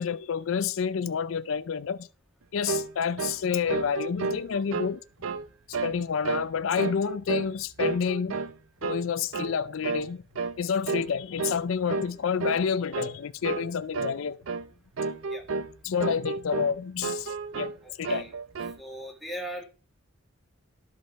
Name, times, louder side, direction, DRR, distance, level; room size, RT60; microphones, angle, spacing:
voice 1, 0.0-2.1 2.5-5.0 5.7-8.4 8.8-10.2 10.6-14.4 15.8-17.7 18.0-18.2, left 6 dB, 75° left, 0.4 m, -29 dB
sound 1, 2.7-2.9 3.2-3.4 3.7-4.9 5.2-5.5 5.7-6.0 6.2-6.5 6.8-7.5 7.8-8.6 8.8-9.0 9.3-9.5 9.8-10.1 10.4-10.6 10.9-11.1 11.4-11.6 11.9-12.1 12.4-12.6 12.9-13.1 13.4-13.7 13.9-14.2 14.4-14.7 15.0-15.7 16.0-16.7 17.0-17.8 18.0-18.8, right 4 dB, 80° right, 0.6 m, -31 dB
voice 2, 17.8-18.3 18.8-19.6, right 1 dB, ahead, 1.7 m, -39 dB
12.5 x 5.3 x 4.5 m
head